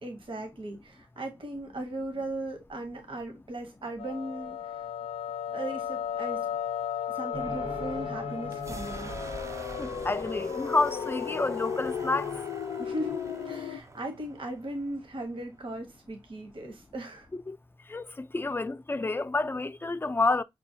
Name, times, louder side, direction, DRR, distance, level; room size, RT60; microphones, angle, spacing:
voice 1, 0.0-4.8 5.5-6.5 7.1-9.1 12.8-17.3, right 1 dB, 65° right, 1.0 m, -38 dB
sound 1, 4.0-13.8, left 8 dB, 85° left, 0.4 m, -35 dB
sound 2, 7.3-10.8, equal, 85° right, 1.5 m, -42 dB
sound 3, 8.5-16.2, right 3 dB, 30° right, 0.4 m, -44 dB
voice 2, 9.8-12.3 17.5-17.6 17.9-20.4, left 3 dB, 25° left, 0.4 m, -29 dB
6.1 x 2.0 x 2.6 m
cardioid pair, 50°, 10 cm